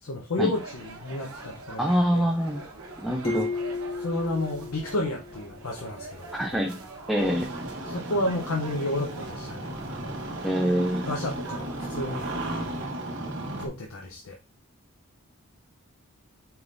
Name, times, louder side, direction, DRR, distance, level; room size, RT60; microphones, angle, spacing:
voice 1, 0.0-2.2 4.0-6.3 7.8-9.7 11.1-12.3 13.6-14.4, left 1 dB, 80° left, 1 dB, 0.7 m, -31 dB
sound 1, 0.5-12.9, right 3 dB, 80° right, 0.9 m, -44 dB
voice 2, 1.8-2.6 3.0-3.5 6.3-6.7 7.1-7.5 10.4-11.1, equal, ahead, -2 dB, 0.5 m, -25 dB
sound 2, 3.2-5.8, left 3 dB, 65° left, 1.5 m, -34 dB
Engine starting, 7.2-13.7, right 1 dB, 55° right, 0.9 m, -35 dB
4.6 x 3.5 x 2.5 m, 0.28 s
head